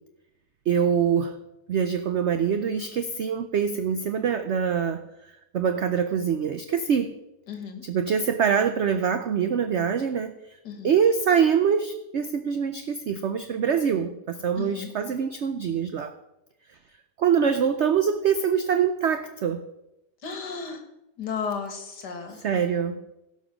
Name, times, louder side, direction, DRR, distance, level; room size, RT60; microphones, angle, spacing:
voice 1, 0.7-1.4 1.7-5.0 5.5-7.2 7.9-10.3 10.8-16.1 17.2-19.6 22.4-23.0, right 7 dB, 60° right, 8 dB, 0.7 m, -24 dB
voice 2, 7.5-7.8 10.6-10.9 14.6-15.0 20.2-20.8 21.2-22.5, left 6 dB, 75° left, 5 dB, 2.2 m, -34 dB
16.5 x 5.7 x 6.0 m, 0.90 s
omnidirectional pair, 1.8 m